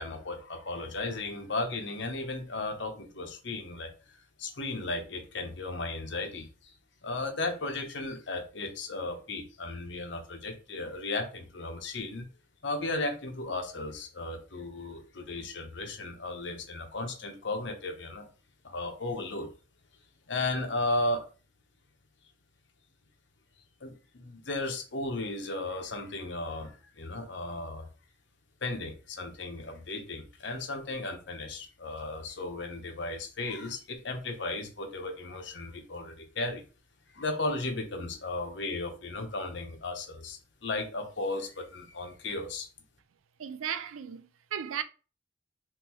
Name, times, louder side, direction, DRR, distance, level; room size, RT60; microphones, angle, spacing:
voice 1, 0.0-3.9 4.4-6.7 7.0-12.3 12.6-18.3 18.6-19.5 20.3-21.2 23.8-27.9 28.6-36.6 37.1-42.7, left 2 dB, 60° left, 0.9 m, -35 dB
voice 2, 43.4-44.8, right 8 dB, 85° right, 0.4 m, -35 dB
3.8 x 3.2 x 3.0 m
head